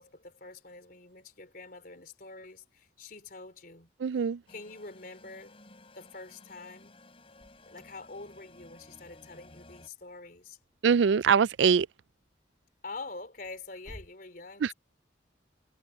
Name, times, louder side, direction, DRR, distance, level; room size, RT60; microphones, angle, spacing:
voice 1, 0.0-3.9 4.5-5.6 5.9-6.9 7.7-10.6 12.8-14.7, left 3 dB, 50° left, 4.0 m, -46 dB
voice 2, 4.0-4.4 10.8-11.9 14.6-14.7, right 6 dB, 70° right, 0.4 m, -23 dB
sound 1, 4.5-9.9, left 2 dB, 30° left, 4.8 m, -55 dB
Alarm, 7.0-14.2, equal, 20° right, 7.4 m, -58 dB
head